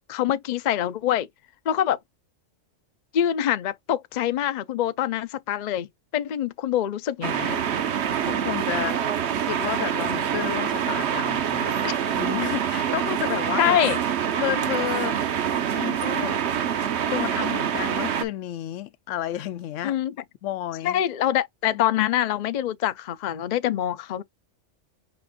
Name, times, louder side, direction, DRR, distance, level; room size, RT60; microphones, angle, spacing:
voice 1, 0.1-1.3 1.7-2.0 3.1-5.9 6.1-7.6 11.8-12.0 13.6-14.0 19.8-20.1 20.8-24.2, left 11 dB, 55° left, 0.5 m, -25 dB
sound 1, 7.2-18.2, right 8 dB, 65° right, 1.0 m, -26 dB
voice 2, 8.2-9.0 9.4-11.7 12.1-13.8 14.4-15.2 15.7-16.4 17.1-20.0 20.4-21.0 21.6-21.8, left 13 dB, 80° left, 0.9 m, -31 dB
5.9 x 2.5 x 3.6 m
omnidirectional pair, 1.3 m